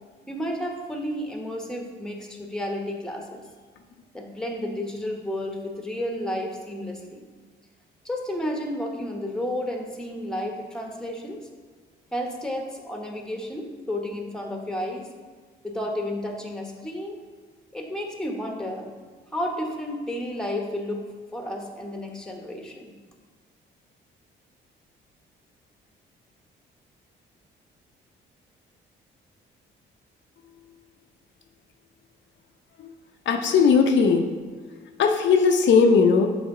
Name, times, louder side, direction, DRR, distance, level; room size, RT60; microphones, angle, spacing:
voice 1, 0.3-3.4 4.1-7.2 8.0-11.4 12.1-15.1 15.6-17.2 17.7-18.9 19.3-22.9, left 1 dB, 5° left, 2 dB, 1.0 m, -32 dB
voice 2, 33.3-34.3 35.0-36.3, left 5 dB, 70° left, 4 dB, 0.6 m, -18 dB
7.1 x 3.5 x 4.8 m, 1.5 s
cardioid pair, 90°, 20 cm